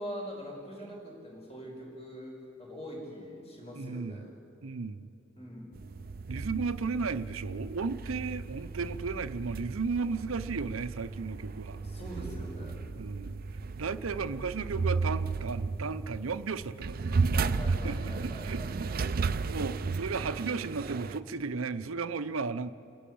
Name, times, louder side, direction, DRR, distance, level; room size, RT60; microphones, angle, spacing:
voice 1, 0.0-4.3 5.4-5.7 11.7-12.9 17.3-19.1, equal, 30° left, -2 dB, 5.0 m, -43 dB
voice 2, 3.7-4.3 4.6-5.1 6.3-11.8 12.9-13.4 13.8-17.2 17.8-18.9 19.5-22.7, right 4 dB, 80° right, 13 dB, 0.7 m, -34 dB
sound 1, 5.7-21.2, right 4 dB, 45° right, 0.5 m, -34 dB
29.0 x 11.5 x 8.5 m, 2.6 s
head